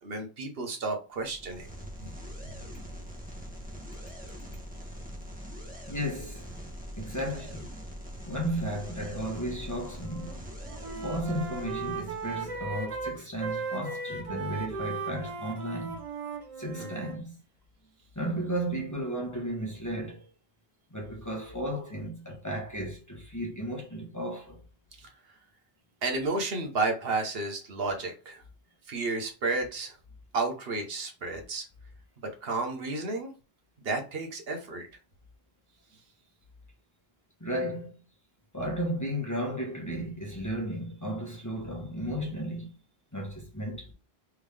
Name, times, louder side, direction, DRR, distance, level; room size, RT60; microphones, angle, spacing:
voice 1, 0.0-1.7 16.8-16.9 25.0-25.1 26.0-28.4 28.9-30.0 30.3-31.6 32.4-33.3 33.8-34.9, right 3 dB, 70° right, 1.2 m, -32 dB
sound 1, 1.1-12.6, equal, 10° right, 1.0 m, -43 dB
voice 2, 5.9-6.5 7.0-7.6 8.2-10.3 10.9-16.0 16.6-17.3 18.1-20.3 20.9-24.6 37.4-37.9 38.5-42.7 43.1-43.9, equal, 20° left, 1.2 m, -34 dB
Wind instrument woodwind instrument, 9.9-10.4 10.6-17.2, right 4 dB, 35° right, 0.8 m, -37 dB
3.6 x 3.5 x 3.3 m
omnidirectional pair, 1.0 m